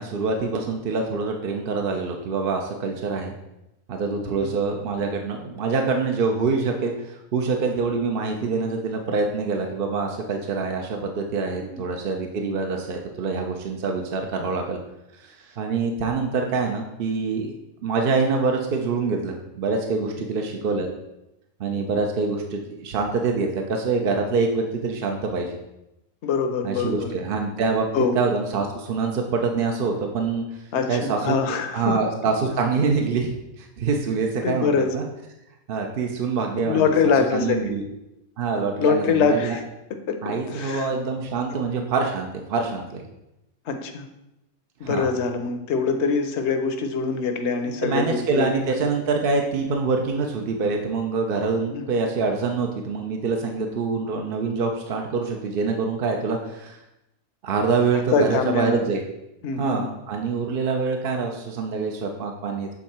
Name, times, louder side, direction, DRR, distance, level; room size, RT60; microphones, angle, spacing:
voice 1, 0.0-3.3 3.9-14.8 15.2-17.5 17.8-20.9 21.6-25.6 26.6-27.9 28.2-30.4 30.9-31.4 31.7-33.3 33.6-35.0 35.7-37.8 38.4-39.6 40.2-43.0 44.8-45.1 47.8-56.8 57.4-59.0 59.6-62.7, right 4 dB, 55° right, 2 dB, 0.6 m, -25 dB
voice 2, 26.2-27.1 27.9-28.2 30.7-32.0 34.4-34.9 36.6-37.8 38.8-39.6 40.1-40.9 41.5-41.6 43.7-44.1 44.8-48.5 51.7-51.8 58.1-58.8 59.4-59.9, left 5 dB, 60° left, 6 dB, 0.9 m, -24 dB
7.1 x 3.6 x 4.3 m, 0.90 s
omnidirectional pair, 1.5 m